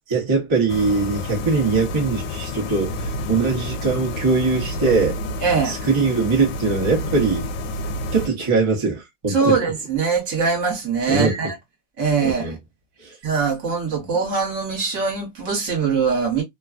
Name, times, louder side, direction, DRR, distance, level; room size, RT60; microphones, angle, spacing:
voice 1, 0.1-5.2 5.6-7.5 8.1-9.6 11.1-11.4 12.2-12.6 13.0-13.1, right 4 dB, 25° right, 0.7 m, -21 dB
sound 1, 0.7-8.3, left 1 dB, 90° left, 1.2 m, -29 dB
voice 2, 5.4-5.7 9.3-11.5 12.0-12.6 13.2-16.4, right 5 dB, 50° right, 1.5 m, -22 dB
3.1 x 2.3 x 2.3 m
omnidirectional pair, 1.9 m